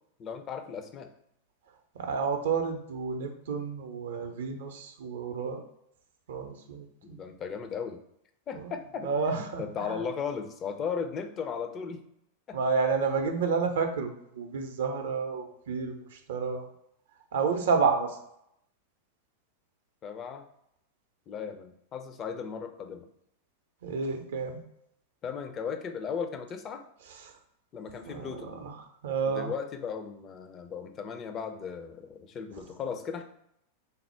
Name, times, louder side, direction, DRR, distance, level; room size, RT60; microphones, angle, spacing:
voice 1, 0.2-1.1 7.0-8.0 8.5-12.0 12.5-12.6 20.0-20.4 21.3-23.1 25.2-26.8 27.7-28.5 29.3-33.2, left 6 dB, 30° left, 6 dB, 0.4 m, -36 dB
voice 2, 2.0-5.6 6.3-7.2 8.6-8.7 9.0-10.0 12.5-16.6 17.3-18.2 23.8-24.6 28.0-28.7 29.0-29.5, right 5 dB, 60° right, 5 dB, 0.5 m, -30 dB
3.4 x 2.0 x 4.3 m, 0.76 s
figure-of-eight pair, 90°, 0 cm